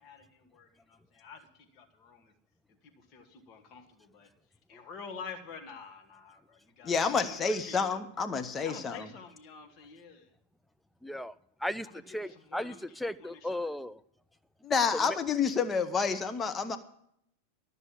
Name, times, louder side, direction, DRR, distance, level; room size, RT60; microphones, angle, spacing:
voice 1, 0.0-1.5 1.7-2.3 3.0-4.3 4.7-8.0 8.6-10.3 11.8-12.8 13.2-13.7, left 5 dB, 35° left, 2.1 m, -48 dB
voice 2, 6.8-9.1 14.6-16.8, left 5 dB, 20° left, 1.0 m, -29 dB
voice 3, 11.0-11.3 11.6-14.0 14.9-15.2, left 1 dB, 5° left, 0.4 m, -36 dB
13.0 x 6.8 x 8.3 m
figure-of-eight pair, 90°, 0 cm